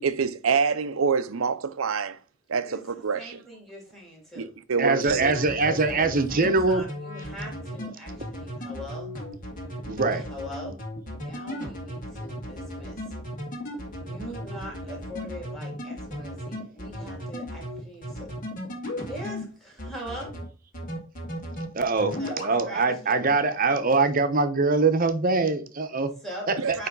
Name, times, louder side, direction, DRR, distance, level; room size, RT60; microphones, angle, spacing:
voice 1, 0.0-2.2 2.5-3.4 4.4-5.3 26.6-26.9, right 5 dB, 80° right, 0.6 m, -26 dB
voice 2, 2.7-4.5 5.5-9.1 10.1-10.8 11.1-13.2 13.6-18.4 18.9-20.3 22.2-22.4 22.6-23.2 26.2-26.9, equal, ahead, 2.7 m, -42 dB
voice 3, 4.8-6.8 9.9-10.3 21.7-26.1, right 3 dB, 45° right, 0.9 m, -23 dB
sound 1, 5.1-19.4 19.8-20.4 20.7-21.7 22.0-22.5, equal, 40° left, 2.1 m, -35 dB
9.0 x 3.3 x 4.0 m
head